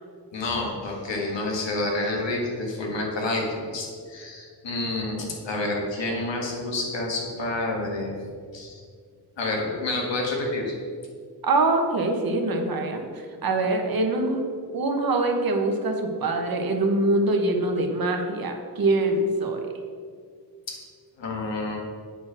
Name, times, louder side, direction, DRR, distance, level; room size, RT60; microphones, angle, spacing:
voice 1, 0.3-8.1 8.5-8.8 9.4-10.7 20.7-20.8 21.2-21.8, left 2 dB, 85° left, 0 dB, 1.7 m, -29 dB
voice 2, 11.4-14.4 14.7-19.6, right 2 dB, 55° right, 4 dB, 1.1 m, -24 dB
8.2 x 4.4 x 6.2 m, 2.1 s
wide cardioid pair, 120°, 43 cm